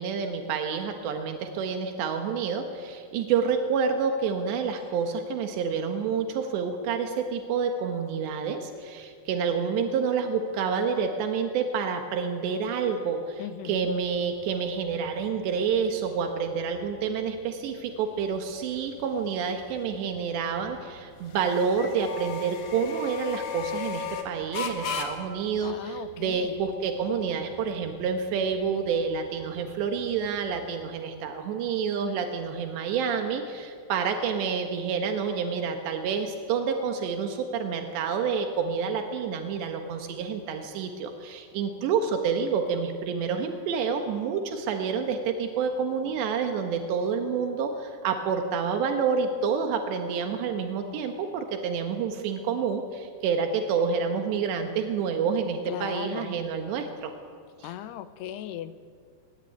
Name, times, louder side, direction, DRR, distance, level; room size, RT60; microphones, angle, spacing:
voice 1, 0.0-57.1 57.6-57.7, right 6 dB, 85° right, 5 dB, 3.7 m, -28 dB
voice 2, 13.4-13.9 25.6-26.6 55.7-56.4 57.6-58.8, left 11 dB, 80° left, 13 dB, 2.9 m, -38 dB
sound 1, 13.8-31.0, left 5 dB, 50° left, 3.2 m, -40 dB
23.5 x 21.5 x 9.4 m, 2.1 s
omnidirectional pair, 4.9 m